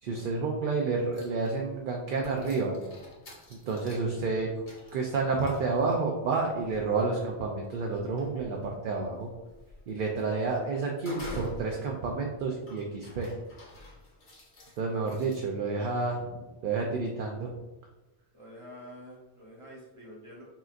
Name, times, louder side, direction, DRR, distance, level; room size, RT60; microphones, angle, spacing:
voice 1, 0.0-2.8 3.7-4.6 4.9-9.3 9.9-13.3 14.8-17.5, right 4 dB, 60° right, 0 dB, 0.6 m, -30 dB
sound 1, 1.1-1.7 2.1-15.4, left 2 dB, 50° left, 1.1 m, -49 dB
voice 2, 18.3-20.4, equal, 30° right, -4 dB, 1.1 m, -47 dB
5.6 x 2.6 x 2.4 m, 1.1 s
omnidirectional pair, 1.1 m